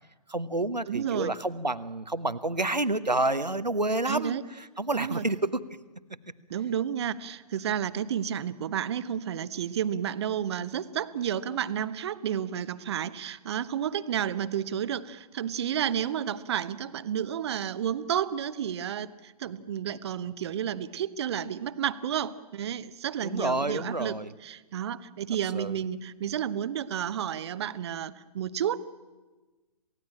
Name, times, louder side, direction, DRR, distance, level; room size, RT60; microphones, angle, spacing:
voice 1, 0.3-5.6 23.2-24.3 25.5-25.8, right 2 dB, 90° right, 14 dB, 1.2 m, -29 dB
voice 2, 0.9-1.3 4.1-4.4 4.9-5.2 6.5-28.9, right 9 dB, 40° right, 14 dB, 1.0 m, -31 dB
27.5 x 17.0 x 8.9 m, 1.2 s
figure-of-eight pair, 125°, 21 cm